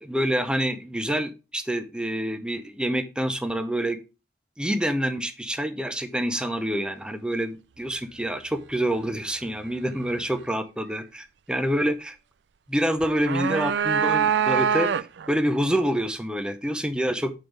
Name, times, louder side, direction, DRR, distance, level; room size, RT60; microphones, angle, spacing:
voice 1, 0.0-4.0 4.6-12.2 12.7-17.3, equal, 5° right, 9 dB, 0.7 m, -27 dB
sound 1, 13.0-15.3, right 7 dB, 85° right, 0.4 m, -24 dB
9.2 x 3.9 x 4.6 m, 0.30 s
head